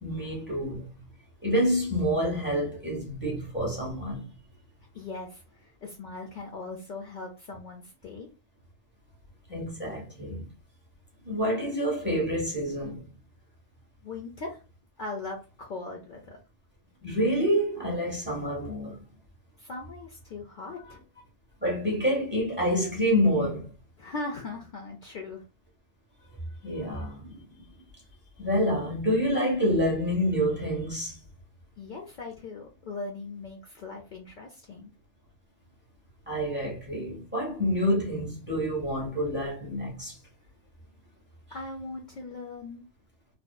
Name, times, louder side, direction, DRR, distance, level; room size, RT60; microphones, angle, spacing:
voice 1, 0.0-0.9 1.4-4.3 9.5-10.5 11.2-13.1 17.0-19.0 21.6-23.7 26.6-27.4 28.4-31.2 36.3-40.2, equal, 10° right, 0.8 m, -27 dB
voice 2, 4.9-8.3 14.0-14.6 15.0-16.4 19.6-21.0 24.0-25.4 31.8-34.9 41.5-42.8, left 3 dB, 85° left, 0.4 m, -39 dB
2.6 x 2.1 x 2.2 m
omnidirectional pair, 1.4 m